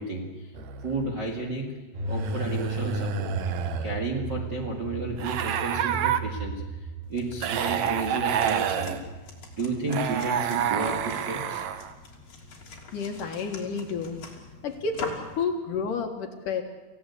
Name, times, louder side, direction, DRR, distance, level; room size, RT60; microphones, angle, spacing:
voice 1, 0.0-0.5 0.8-3.3 3.8-9.0 9.6-11.6, right 2 dB, 40° right, 0 dB, 1.6 m, -32 dB
sound 1, 0.6-1.1 2.1-4.0 5.2-6.2 7.4-9.0 9.9-11.9, right 8 dB, 90° right, 1.6 m, -28 dB
sound 2, 1.9-11.8 12.1-12.2, right 3 dB, 60° right, 5.1 m, -37 dB
sound 3, 7.0-15.4, left 4 dB, 40° left, 4.0 m, -44 dB
voice 2, 12.9-14.2 14.6-16.6, left 5 dB, 60° left, 4 dB, 2.6 m, -30 dB
27.0 x 16.0 x 8.3 m, 1.2 s
omnidirectional pair, 4.9 m